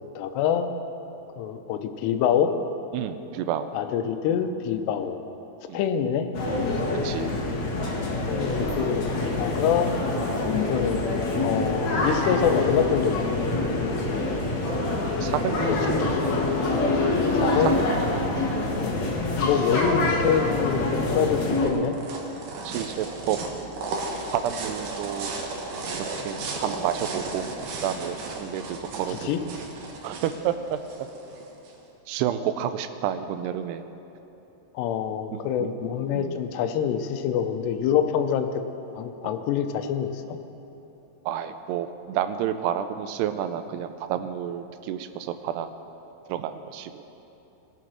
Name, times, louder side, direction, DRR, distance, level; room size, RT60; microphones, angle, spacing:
voice 1, 0.2-0.7 1.4-2.5 3.7-5.2 5.7-6.3 8.3-10.0 10.7-11.0 11.4-13.4 16.0-16.3 17.3-17.7 18.8-20.8 21.1-22.0 29.1-29.4 34.7-38.5 39.0-40.4, left 8 dB, 90° left, 8 dB, 2.9 m, -26 dB
voice 2, 2.9-3.7 5.7-5.8 7.0-7.3 15.2-15.6 17.7-17.8 18.1-18.4 22.6-23.4 24.3-25.3 25.9-27.5 27.8-29.3 30.0-30.8 32.1-33.8 35.3-35.4 36.1-36.4 41.3-45.7 46.3-47.0, right 10 dB, 85° right, 10 dB, 2.6 m, -30 dB
sound 1, 6.3-21.7, left 2 dB, 55° left, 2.4 m, -25 dB
sound 2, 20.9-31.7, right 3 dB, 60° right, 2.5 m, -35 dB
21.0 x 7.7 x 6.3 m, 3.0 s
omnidirectional pair, 4.7 m